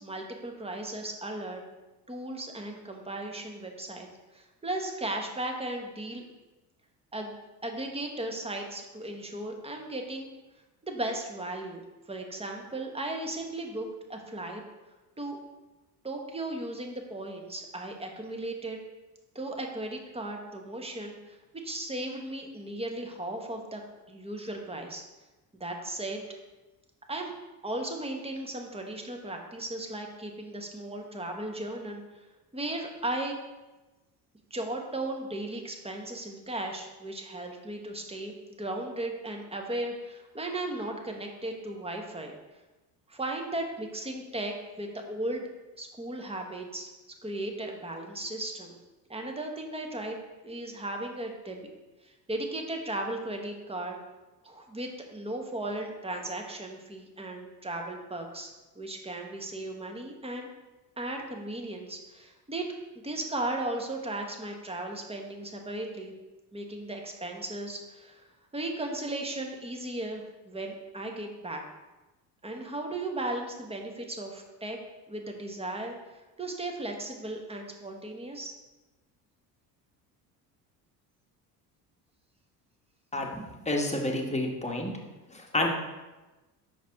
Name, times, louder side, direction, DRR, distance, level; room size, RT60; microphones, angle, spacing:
voice 1, 0.0-1.6 2.1-4.1 4.3-6.2 7.1-10.3 10.8-11.8 12.1-14.6 15.2-15.4 16.0-18.8 19.3-21.4 21.6-23.8 24.1-25.0 25.5-26.4 27.1-27.3 27.6-32.2 32.5-33.4 34.5-42.3 43.1-45.5 45.7-46.9 47.2-48.8 49.1-50.2 50.4-51.7 52.0-54.0 54.4-58.5 58.8-60.5 61.0-62.7 63.0-66.1 66.5-68.2 68.5-71.6 72.4-74.8 75.1-75.9 76.4-78.5, right 1 dB, 10° right, 2 dB, 1.1 m, -36 dB
voice 2, 83.6-84.9 85.3-85.7, left 1 dB, 15° left, 1 dB, 1.2 m, -29 dB
6.0 x 4.7 x 3.5 m, 1.1 s
hypercardioid pair, 65°, 48 cm